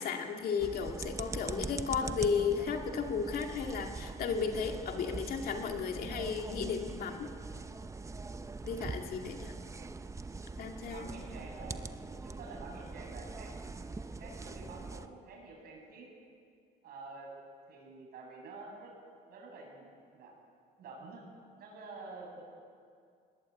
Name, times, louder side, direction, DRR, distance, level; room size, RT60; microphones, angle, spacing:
voice 1, 0.0-7.3 8.7-9.5 10.6-11.2, left 6 dB, 60° left, 3 dB, 2.3 m, -34 dB
sound 1, 0.6-15.1, right 3 dB, 20° right, 0.8 m, -42 dB
voice 2, 8.6-8.9 10.9-13.5 14.2-16.1 16.8-17.3 17.7-18.9 19.3-20.3 20.8-21.2 21.6-22.4, right 3 dB, 65° right, -1 dB, 7.9 m, -49 dB
21.0 x 19.5 x 8.6 m, 2.3 s
cardioid pair, 110°, 17 cm